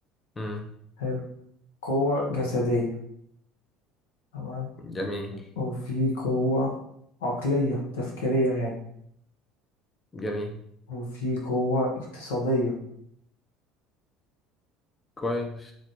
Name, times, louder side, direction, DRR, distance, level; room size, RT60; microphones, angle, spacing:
voice 1, 0.4-0.7 4.8-5.4 10.1-10.6 15.2-15.7, left 1 dB, 25° left, 3 dB, 0.6 m, -32 dB
voice 2, 1.8-2.9 4.3-4.7 5.6-6.7 7.2-8.7 10.9-12.7, left 1 dB, 80° left, -1 dB, 1.1 m, -27 dB
4.1 x 3.1 x 3.1 m, 0.71 s
hypercardioid pair, 70°, 0 cm